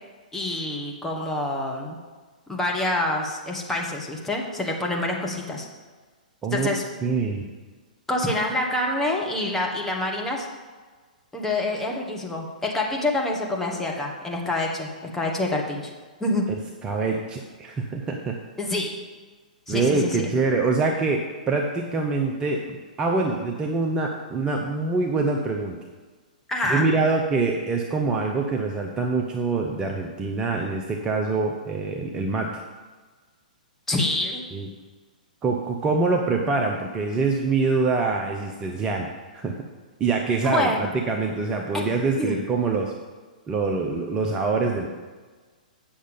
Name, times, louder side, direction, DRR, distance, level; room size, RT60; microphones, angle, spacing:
voice 1, 0.3-2.0 2.5-5.7 6.5-6.8 8.1-10.5 11.3-15.9 16.2-16.4 18.6-18.9 19.7-20.3 26.5-26.9 33.9-34.4 40.4-40.8 42.2-42.4, left 2 dB, 5° left, -1 dB, 1.4 m, -26 dB
voice 2, 7.0-7.4 16.8-18.3 19.7-25.8 26.7-32.6 34.5-34.7 35.4-39.1 39.3-39.6 40.0-42.9 43.5-44.9, right 3 dB, 20° right, 1 dB, 0.8 m, -25 dB
8.7 x 6.4 x 5.3 m, 1.4 s
figure-of-eight pair, 115°, 5 cm